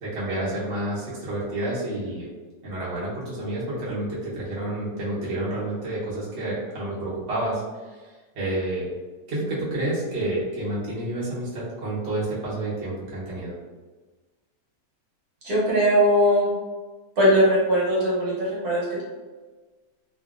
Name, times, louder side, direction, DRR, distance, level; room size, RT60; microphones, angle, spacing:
voice 1, 0.0-2.3 2.6-7.6 7.9-8.9 9.3-13.6, right 1 dB, 45° right, -9 dB, 1.0 m, -29 dB
voice 2, 15.4-16.5 17.2-19.0, equal, 70° right, -7 dB, 1.4 m, -20 dB
2.8 x 2.6 x 2.4 m, 1.3 s
omnidirectional pair, 1.8 m